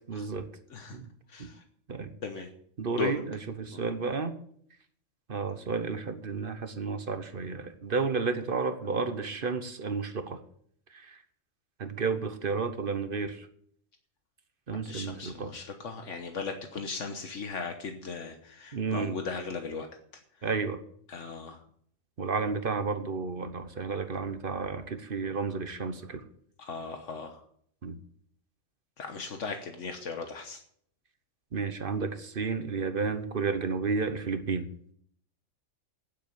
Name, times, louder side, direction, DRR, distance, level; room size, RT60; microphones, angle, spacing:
voice 1, 0.1-0.5 0.9-1.1 1.4-1.5 1.9-2.1 2.8-4.3 5.3-10.4 10.9-11.2 11.8-13.5 14.7-15.5 18.7-19.2 20.4-20.8 22.2-26.2 27.8-28.0 31.5-34.7, right 4 dB, 50° right, 10 dB, 1.1 m, -32 dB
voice 2, 1.3-1.6 2.2-2.5 2.9-3.1 3.7-3.8 14.8-19.9 21.1-21.6 26.6-27.4 29.0-30.6, left 5 dB, 75° left, 5 dB, 1.5 m, -37 dB
9.4 x 7.7 x 9.4 m, 0.64 s
omnidirectional pair, 1.3 m